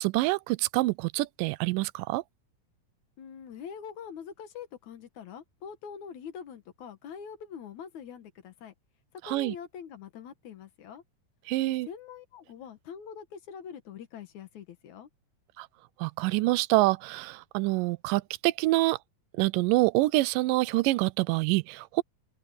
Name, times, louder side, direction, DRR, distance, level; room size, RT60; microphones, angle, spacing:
voice 1, 0.0-2.2 9.3-9.6 11.5-11.9 15.6-15.7 16.0-19.0 19.4-22.0, right 20 dB, 85° right, 2.2 m, -26 dB
voice 2, 3.2-8.7 9.2-11.0 11.6-15.1, left 7 dB, 65° left, 2.7 m, -44 dB
open air
omnidirectional pair, 3.8 m